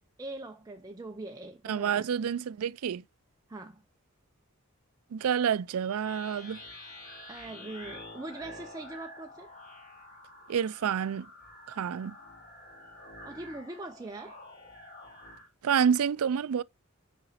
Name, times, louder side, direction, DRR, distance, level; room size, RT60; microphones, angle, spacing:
voice 1, 0.2-2.1 3.5-3.8 7.3-9.5 13.2-14.4, right 2 dB, 15° right, 0.5 m, -42 dB
voice 2, 1.7-3.0 5.1-6.6 10.5-11.3 11.7-12.1 15.6-16.6, right 7 dB, 85° right, 0.4 m, -28 dB
sound 1, 6.0-15.5, left 1 dB, 35° left, 3.7 m, -48 dB
6.7 x 5.0 x 5.6 m
head